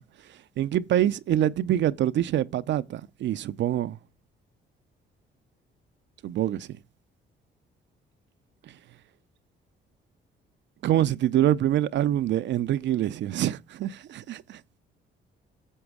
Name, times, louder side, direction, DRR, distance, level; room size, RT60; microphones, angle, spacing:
voice 1, 0.6-4.0 6.2-6.7 10.8-14.6, right 12 dB, 65° right, 0.5 m, -25 dB
9.9 x 7.1 x 4.8 m
cardioid pair, 90°, 20 cm